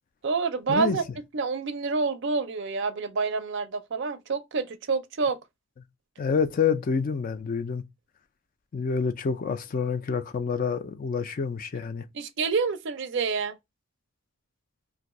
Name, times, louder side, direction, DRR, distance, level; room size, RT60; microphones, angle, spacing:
voice 1, 0.2-1.0 1.3-5.4 12.1-13.6, right 4 dB, 55° right, 0.4 m, -27 dB
voice 2, 6.2-7.8 8.7-12.0, left 5 dB, 40° left, 0.3 m, -27 dB
2.5 x 2.3 x 4.0 m
head